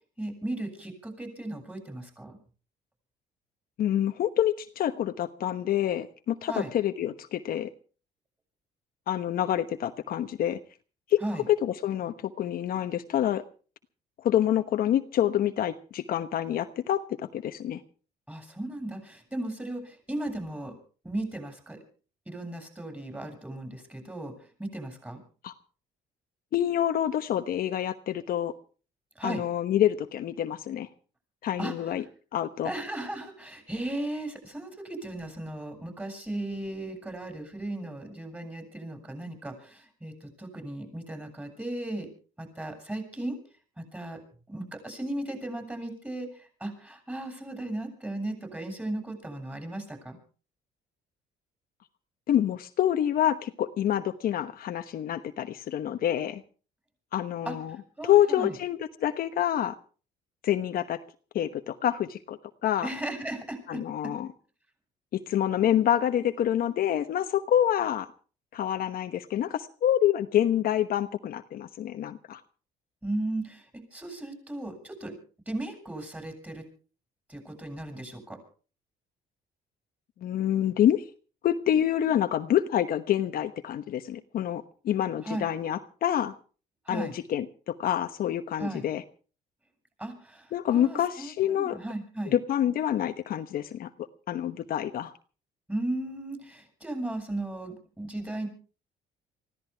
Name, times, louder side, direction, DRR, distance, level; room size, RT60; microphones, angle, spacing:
voice 1, 0.2-2.4 6.4-6.7 11.2-11.5 18.3-20.7 21.0-21.8 22.3-24.3 24.6-25.2 29.2-29.4 31.6-31.7 32.6-42.1 42.4-43.4 43.8-44.2 44.5-50.2 57.5-57.6 58.0-58.5 62.8-64.1 73.0-75.1 75.5-76.6 77.3-78.4 85.2-85.5 86.9-87.1 88.6-88.9 90.0-92.4 95.7-98.5, right 1 dB, 10° right, 4 dB, 7.1 m, -36 dB
voice 2, 3.8-7.7 9.1-10.6 11.1-11.2 11.5-13.4 14.2-17.8 25.4-25.5 26.5-28.5 29.2-30.9 31.4-32.0 32.3-32.7 52.3-56.4 57.1-57.8 58.0-59.8 60.4-61.0 61.3-62.9 63.7-64.3 65.1-68.1 68.5-72.4 80.2-81.0 81.4-86.3 86.9-89.0 90.5-91.8 92.3-93.9 94.3-95.1, left 11 dB, 60° left, 8 dB, 1.1 m, -27 dB
24.5 x 16.0 x 3.5 m, 0.39 s
cardioid pair, 110°, 17 cm